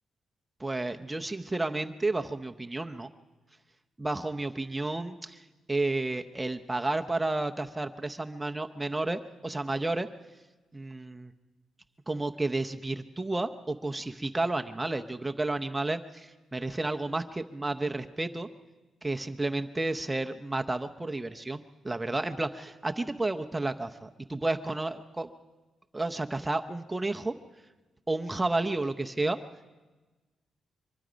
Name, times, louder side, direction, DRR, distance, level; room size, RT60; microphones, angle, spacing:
voice 1, 0.6-3.1 4.0-10.1 10.7-11.3 12.1-18.5 19.0-25.3 25.9-27.3 28.1-29.4, right 2 dB, 10° right, 6 dB, 0.7 m, -31 dB
24.5 x 22.0 x 5.1 m, 1.2 s
wide cardioid pair, 150°, 0 cm